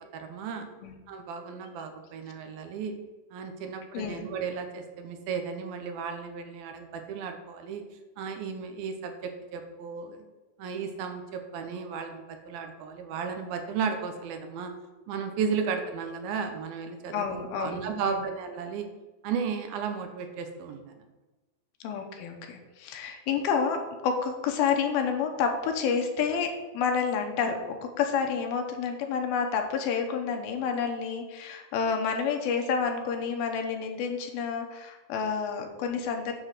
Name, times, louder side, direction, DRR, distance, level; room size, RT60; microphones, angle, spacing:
voice 1, 0.1-0.7 1.1-2.9 3.3-7.8 8.2-10.3 10.6-14.7 15.1-18.9 19.2-21.0, right 6 dB, 80° right, 5 dB, 2.6 m, -34 dB
voice 2, 17.1-18.2 21.8-36.3, left 6 dB, 80° left, 4 dB, 2.8 m, -29 dB
9.1 x 4.0 x 6.5 m, 1.1 s
omnidirectional pair, 4.4 m